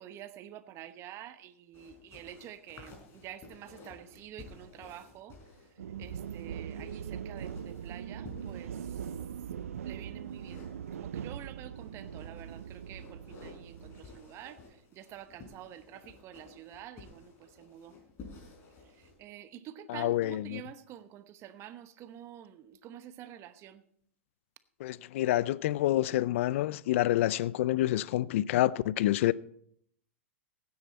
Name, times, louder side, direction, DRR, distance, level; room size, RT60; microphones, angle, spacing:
voice 1, 0.0-5.4 6.0-9.1 9.8-18.0 18.9-23.8, right 11 dB, 40° right, 1.0 m, -48 dB
sound 1, 1.7-9.6 10.2-11.3 11.8-19.2, left 3 dB, 35° left, 5.0 m, -53 dB
sound 2, 5.8-14.0, right 8 dB, 85° right, 0.5 m, -41 dB
voice 2, 19.9-20.6 24.8-29.3, left 14 dB, 65° left, 0.4 m, -28 dB
17.0 x 9.6 x 4.2 m
hypercardioid pair, 115°, 7 cm